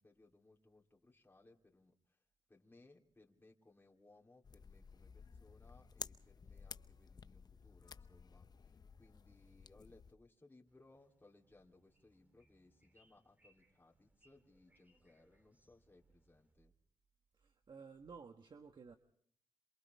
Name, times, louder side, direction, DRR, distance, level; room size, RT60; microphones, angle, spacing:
voice 1, 0.0-2.2 2.5-16.7, left 2 dB, 20° left, -2 dB, 3.3 m, -66 dB
sound 1, 4.4-10.1, left 5 dB, 45° left, 0.7 m, -53 dB
sound 2, 10.7-16.5, right 1 dB, 15° right, 3.6 m, -75 dB
voice 2, 17.3-19.0, right 5 dB, 55° right, 7 dB, 1.5 m, -55 dB
27.5 x 27.5 x 3.5 m, 0.64 s
cardioid pair, 65°, 10 cm